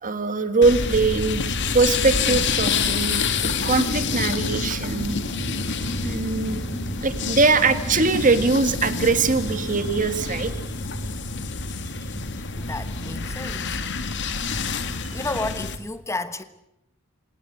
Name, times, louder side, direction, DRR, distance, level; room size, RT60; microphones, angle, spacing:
voice 1, 0.0-5.2 6.0-6.6 7.0-10.6, right 3 dB, 40° right, 1.8 m, -22 dB
sound 1, 0.6-15.8, left 4 dB, 55° left, 2.1 m, -27 dB
sound 2, 4.8-10.5, equal, ahead, 7.5 m, -39 dB
voice 2, 5.1-6.0 12.4-14.1 14.4-16.4, left 2 dB, 15° left, 1.2 m, -34 dB
27.5 x 18.5 x 8.1 m
head